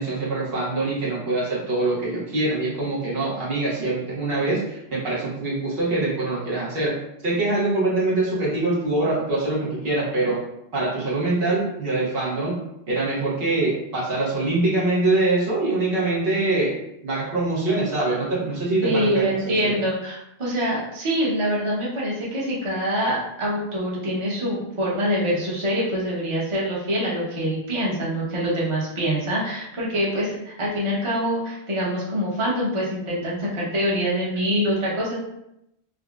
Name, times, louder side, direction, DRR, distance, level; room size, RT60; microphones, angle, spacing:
voice 1, 0.0-7.0 7.2-10.4 10.7-12.6 12.9-16.7 17.0-19.8, right 2 dB, 65° right, -6 dB, 1.1 m, -24 dB
voice 2, 18.8-35.2, equal, 30° right, -6 dB, 0.9 m, -25 dB
5.0 x 2.0 x 2.4 m, 0.83 s
omnidirectional pair, 1.1 m